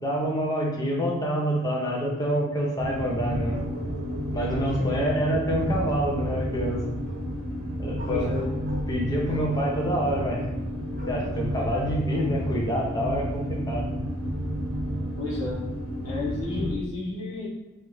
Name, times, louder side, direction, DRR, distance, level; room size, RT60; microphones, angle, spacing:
voice 1, 0.0-3.6 4.3-6.8 7.8-8.3 8.9-10.5 11.1-13.9, equal, 15° left, -3 dB, 0.7 m, -27 dB
sound 1, 2.8-16.8, equal, 90° right, 0.7 m, -31 dB
Bark, 3.5-5.1 5.5-7.3 7.9-8.9 9.2-10.2 10.9-12.6, right 1 dB, 40° right, 0.8 m, -43 dB
voice 2, 4.5-4.9 8.1-8.6 15.1-17.5, left 3 dB, 90° left, -5 dB, 1.2 m, -32 dB
3.3 x 2.5 x 3.0 m, 1.1 s
head